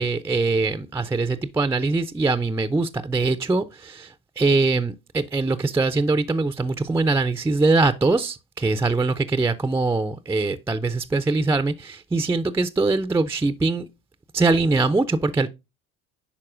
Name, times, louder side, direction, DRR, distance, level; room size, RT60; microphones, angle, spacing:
voice 1, 0.0-4.1 4.4-13.8 14.3-15.5, right 3 dB, 5° right, 0.4 m, -22 dB
11.0 x 4.2 x 2.4 m
hypercardioid pair, 60°, 44 cm